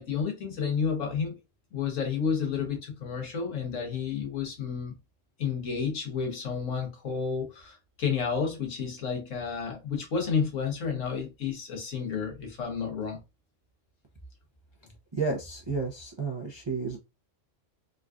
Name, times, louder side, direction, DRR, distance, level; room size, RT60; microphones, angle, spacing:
voice 1, 0.0-1.4 1.7-4.9 5.4-13.2, left 6 dB, 85° left, 1.4 m, -31 dB
voice 2, 15.1-17.0, right 4 dB, 40° right, 0.4 m, -31 dB
3.8 x 2.3 x 2.4 m
omnidirectional pair, 1.3 m